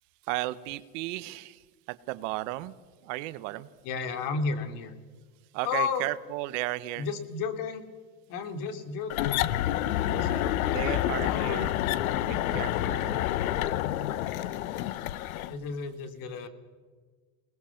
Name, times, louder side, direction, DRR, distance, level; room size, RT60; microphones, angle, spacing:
voice 1, 0.2-2.7 3.0-3.7 5.5-7.1 10.2-10.4 10.7-11.8 12.2-13.3, right 18 dB, 65° right, 15 dB, 1.2 m, -35 dB
voice 2, 3.8-4.9 5.6-6.1 7.0-7.8 8.3-9.5 9.9-11.7 12.2-12.6 15.5-16.5, left 5 dB, 50° left, 8 dB, 2.9 m, -33 dB
sound 1, 9.1-15.5, left 13 dB, 85° left, 1.0 m, -28 dB
26.5 x 19.5 x 5.9 m, 1.5 s
supercardioid pair, 140°, 41 cm